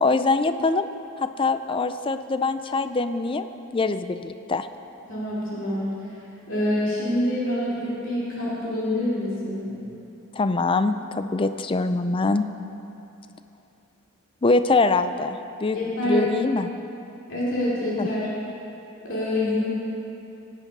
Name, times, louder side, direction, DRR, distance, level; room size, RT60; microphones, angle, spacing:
voice 1, 0.0-0.9 1.2-3.5 3.7-4.7 10.3-12.4 14.4-15.8 16.0-16.7 18.0-18.1, left 3 dB, 25° left, 10 dB, 0.4 m, -23 dB
voice 2, 5.1-5.9 6.5-9.8 15.7-16.3 17.3-18.3 19.0-19.6, left 1 dB, 60° left, -7 dB, 3.0 m, -26 dB
17.5 x 8.3 x 5.4 m, 2.9 s
head